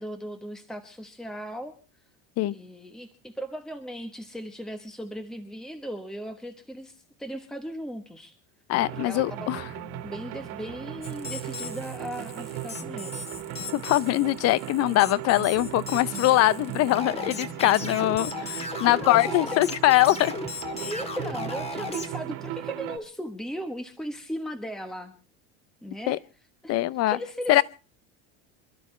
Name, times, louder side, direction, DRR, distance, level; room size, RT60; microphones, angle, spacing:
voice 1, 0.0-1.7 2.5-8.4 8.9-9.5 10.0-13.3 18.7-19.6 20.8-25.1 25.8-26.2 26.6-26.7 27.1-27.6, equal, ahead, 1.1 m, -37 dB
voice 2, 8.7-9.6 13.7-20.3 26.1-26.2 26.7-27.2 27.5-27.6, left 16 dB, 45° left, 0.7 m, -22 dB
sound 1, 8.8-23.0, right 12 dB, 65° right, 2.1 m, -37 dB
sound 2, 11.0-22.1, left 4 dB, 15° left, 1.8 m, -37 dB
27.5 x 12.0 x 3.3 m
cardioid pair, 145°, 35 cm